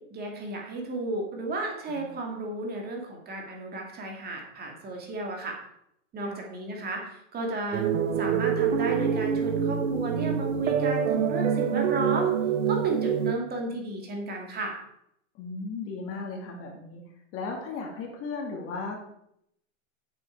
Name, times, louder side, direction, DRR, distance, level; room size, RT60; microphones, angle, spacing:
voice 1, 0.1-5.6 6.1-7.9 8.2-12.3 12.7-14.7, right 2 dB, 25° right, 1 dB, 2.3 m, -33 dB
sound 1, 7.7-13.3, right 7 dB, 85° right, 1.0 m, -26 dB
voice 2, 15.3-17.0 17.3-19.0, left 4 dB, 35° left, 2 dB, 2.1 m, -36 dB
8.2 x 7.5 x 4.5 m, 0.75 s
hypercardioid pair, 135°, 38 cm